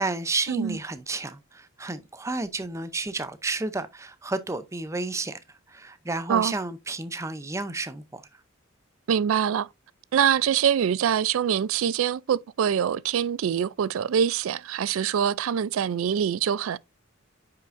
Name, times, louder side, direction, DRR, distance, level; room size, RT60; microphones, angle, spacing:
voice 1, 0.0-5.4 5.7-8.2, right 3 dB, 15° right, 0.5 m, -31 dB
voice 2, 9.1-9.7 10.1-16.8, right 8 dB, 80° right, 0.3 m, -24 dB
9.2 x 5.7 x 2.5 m
head